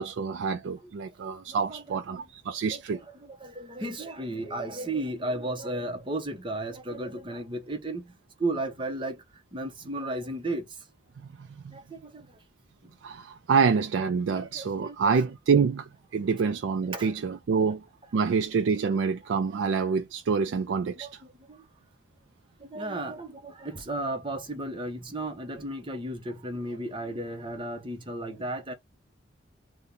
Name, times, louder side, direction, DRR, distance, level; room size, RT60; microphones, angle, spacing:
voice 1, 0.0-3.0 11.4-11.7 13.0-17.8 18.1-21.1, right 5 dB, 75° right, 0.3 m, -27 dB
voice 2, 1.5-2.2 2.7-8.1 8.4-9.2 9.5-10.7 11.7-12.3 14.0-14.1 14.3-15.0 15.5-15.6 16.4-16.5 16.9-17.2 18.8-19.0 19.5-19.6 20.9-21.1 21.5-21.6 22.6-28.7, right 2 dB, 25° right, 0.7 m, -34 dB
2.8 x 2.2 x 3.6 m
head